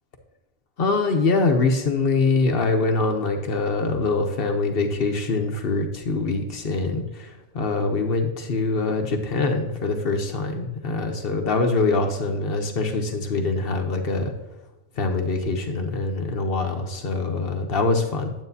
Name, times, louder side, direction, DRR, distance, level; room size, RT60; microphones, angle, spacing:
voice 1, 0.8-14.3 15.0-18.3, left 3 dB, 65° left, 4 dB, 1.1 m, -24 dB
9.2 x 8.6 x 2.7 m, 0.98 s
omnidirectional pair, 1.1 m